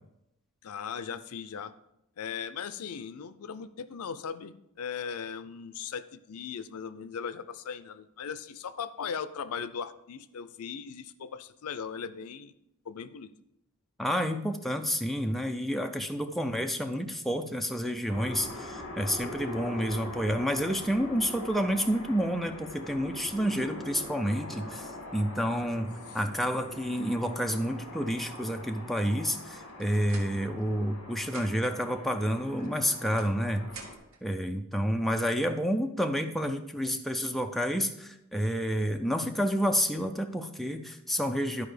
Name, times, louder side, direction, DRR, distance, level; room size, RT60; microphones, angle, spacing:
voice 1, 0.6-1.7 2.2-12.5 12.9-13.3, left 6 dB, 85° left, 14 dB, 0.5 m, -38 dB
voice 2, 14.0-33.6 34.2-41.7, equal, ahead, 4 dB, 0.4 m, -29 dB
sound 1, 18.1-34.0, left 1 dB, 60° left, 2.0 m, -43 dB
sound 2, 29.6-30.9 31.2-31.8 32.6-34.2, right 4 dB, 65° right, 1.4 m, -50 dB
11.5 x 4.8 x 5.0 m, 0.84 s
head